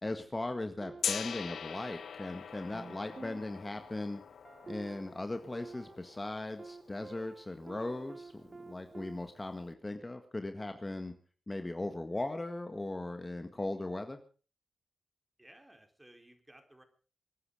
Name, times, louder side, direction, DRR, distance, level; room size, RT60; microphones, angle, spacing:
voice 1, 0.0-4.2 4.7-11.1 11.5-14.2, left 2 dB, 25° left, 7 dB, 1.8 m, -38 dB
sound 1, 0.8-2.1 2.5-9.2, right 3 dB, 40° right, 1.0 m, -51 dB
Gong, 1.0-6.9, left 7 dB, 70° left, 0.8 m, -42 dB
voice 2, 15.4-16.8, right 1 dB, 15° right, 6 dB, 4.3 m, -58 dB
25.5 x 9.8 x 5.0 m, 0.38 s
supercardioid pair, 40°, 0 cm